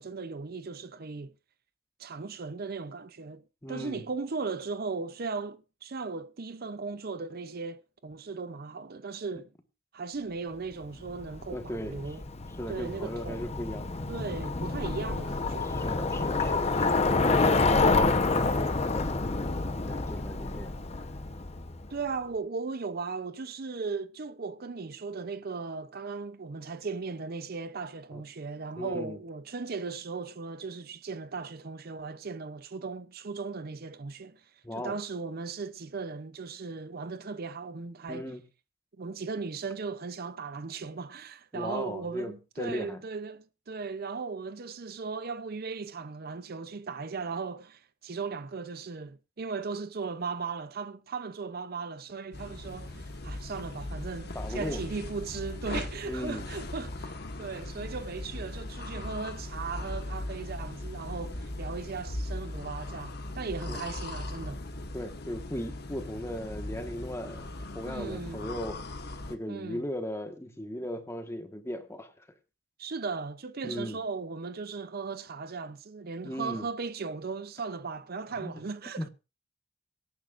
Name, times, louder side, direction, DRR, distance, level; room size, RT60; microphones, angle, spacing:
voice 1, 0.0-1.3 2.0-3.4 3.7-9.5 9.9-12.2 12.7-13.4 14.1-15.7 17.3-17.8 21.9-38.3 39.0-64.6 67.9-68.5 69.5-69.9 72.8-79.1, right 4 dB, 50° right, 0.6 m, -37 dB
voice 2, 3.6-4.1 11.5-12.1 12.6-13.9 15.6-20.7 28.1-28.2 28.8-29.2 34.6-35.0 38.1-38.4 41.5-43.0 54.3-54.8 56.0-56.5 63.7-63.8 64.9-67.5 67.7-68.8 69.3-72.3 73.6-74.0 76.2-76.7 78.4-78.5 79.0-79.1, equal, 15° left, 1.4 m, -37 dB
Bicycle, 11.0-21.9, left 3 dB, 35° left, 0.9 m, -28 dB
sound 1, 52.3-69.4, left 2 dB, 60° left, 1.3 m, -39 dB
24.0 x 10.5 x 2.5 m
head